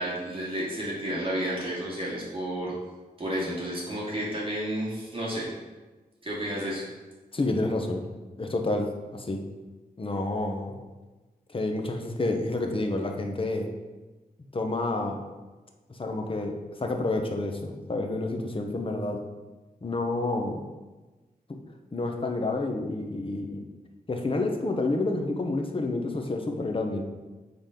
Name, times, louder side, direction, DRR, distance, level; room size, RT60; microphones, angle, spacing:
voice 1, 0.0-2.7 3.2-5.5 6.2-6.9, right 1 dB, 35° right, -7 dB, 2.4 m, -31 dB
voice 2, 7.3-8.0 8.4-9.4 10.0-10.8 11.5-13.7 14.5-15.2 15.9-19.2 19.8-20.6 21.5-21.6 21.9-23.6 24.1-27.0, left 2 dB, 35° left, 3 dB, 1.0 m, -29 dB
7.5 x 4.0 x 5.2 m, 1.2 s
wide cardioid pair, 85°, 16 cm